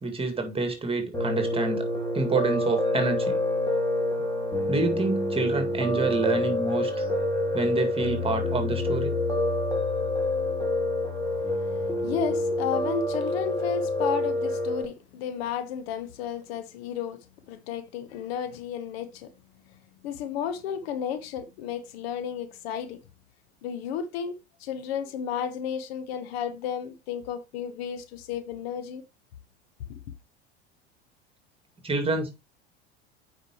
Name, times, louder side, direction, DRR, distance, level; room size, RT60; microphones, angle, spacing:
voice 1, 0.0-1.8 2.1-3.4 4.7-7.1 7.5-9.2 31.8-32.4, right 3 dB, 15° right, 2.0 m, -27 dB
Piano, 1.1-14.8, left 1 dB, 10° left, 2.6 m, -27 dB
voice 2, 11.6-19.3 20.0-23.0 23.6-29.0, left 8 dB, 65° left, 1.1 m, -33 dB
8.9 x 4.8 x 3.0 m
hypercardioid pair, 75°, 32 cm